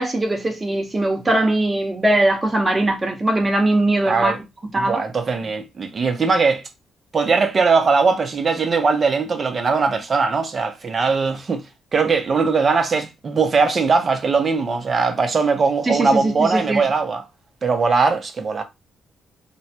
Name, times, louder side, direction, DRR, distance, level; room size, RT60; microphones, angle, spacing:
voice 1, 0.0-5.0 15.9-16.9, right 1 dB, 20° right, 1.0 m, -20 dB
voice 2, 4.1-4.4 4.8-6.6 7.1-11.6 11.9-17.2 17.6-18.6, right 4 dB, 40° right, 0.6 m, -20 dB
3.0 x 2.1 x 2.8 m
cardioid pair, 90°, 0 cm